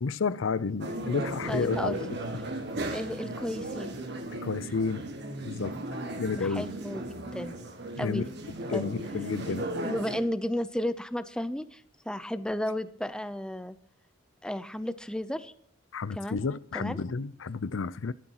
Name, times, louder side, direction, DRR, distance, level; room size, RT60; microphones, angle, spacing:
voice 1, 0.0-2.2 4.4-5.1 5.4-5.8 6.2-6.7 8.0-8.3 8.7-9.7 15.9-18.1, left 4 dB, 75° left, 0.5 m, -31 dB
sound 1, 0.8-10.2, right 2 dB, 60° right, 1.7 m, -36 dB
voice 2, 1.5-2.1 2.9-4.0 6.3-7.6 8.0-8.2 8.7-8.9 9.8-13.8 14.4-15.5 16.2-16.4 16.7-17.0, left 1 dB, 5° left, 0.6 m, -33 dB
14.5 x 12.5 x 3.0 m
head